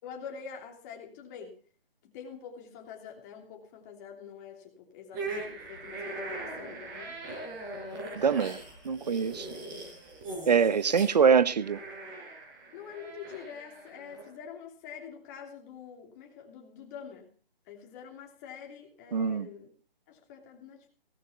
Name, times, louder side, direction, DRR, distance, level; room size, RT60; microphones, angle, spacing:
voice 1, 0.0-1.6 2.0-7.2 9.5-9.7 10.9-11.0 12.7-17.3 17.7-19.7 20.1-20.9, left 7 dB, 20° left, 3.1 m, -46 dB
sound 1, 5.1-14.3, right 2 dB, 20° right, 6.2 m, -41 dB
voice 2, 8.1-8.6 8.8-9.5 10.5-11.8 19.1-19.5, right 6 dB, 45° right, 0.9 m, -24 dB
18.5 x 13.0 x 4.5 m
hypercardioid pair, 165°, 29 cm